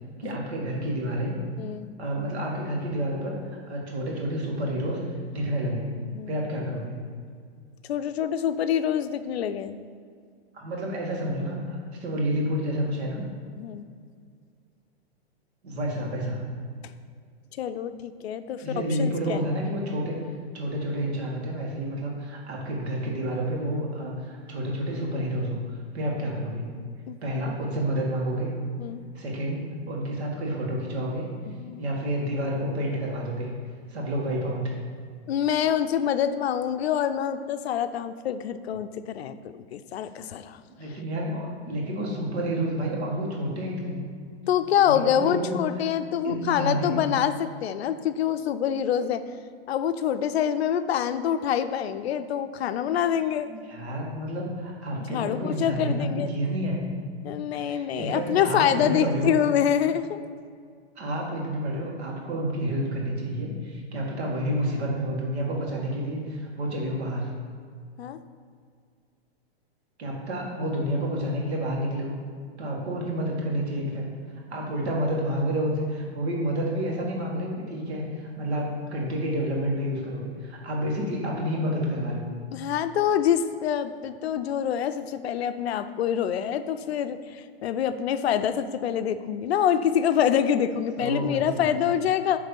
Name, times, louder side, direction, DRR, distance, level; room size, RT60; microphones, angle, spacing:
voice 1, 0.2-1.3 2.0-5.0 5.3-6.0 6.3-7.0 10.5-13.2 15.6-16.5 18.6-20.2 20.5-26.6 27.2-28.5 29.1-31.3 31.8-33.5 33.9-34.7 40.8-44.0 44.8-45.6 46.2-46.9 53.5-56.9 57.6-59.3 61.0-67.3 70.0-72.1 72.6-74.1 74.5-82.3 91.0-91.8, equal, 80° right, -1 dB, 1.9 m, -29 dB
voice 2, 1.6-1.9 6.1-6.3 7.9-9.8 13.6-13.8 17.6-19.5 27.1-27.2 27.5-27.6 28.8-29.0 31.5-31.8 35.3-40.6 44.5-49.2 49.7-53.5 55.1-56.3 57.2-60.2 68.0-68.2 82.5-92.4, left 9 dB, 75° left, 11 dB, 0.5 m, -26 dB
8.6 x 3.3 x 5.3 m, 2.1 s
supercardioid pair, 170°, 32 cm